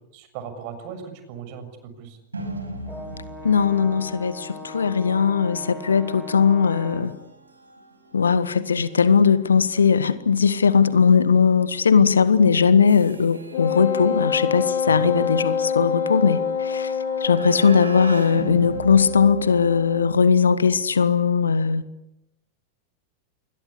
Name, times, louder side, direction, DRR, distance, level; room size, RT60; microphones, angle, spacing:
voice 1, 0.1-2.2 14.8-15.2, right 7 dB, 45° right, 6.8 m, -38 dB
sound 1, 2.3-20.1, right 2 dB, 80° right, 5.4 m, -41 dB
Brass instrument, 2.9-7.3, left 1 dB, ahead, 4.1 m, -39 dB
voice 2, 3.4-7.1 8.1-16.9 17.2-21.8, left 6 dB, 70° left, 1.6 m, -19 dB
Wind instrument woodwind instrument, 13.5-20.2, left 6 dB, 55° left, 2.3 m, -27 dB
27.5 x 22.0 x 8.5 m
figure-of-eight pair, 90°, 0 cm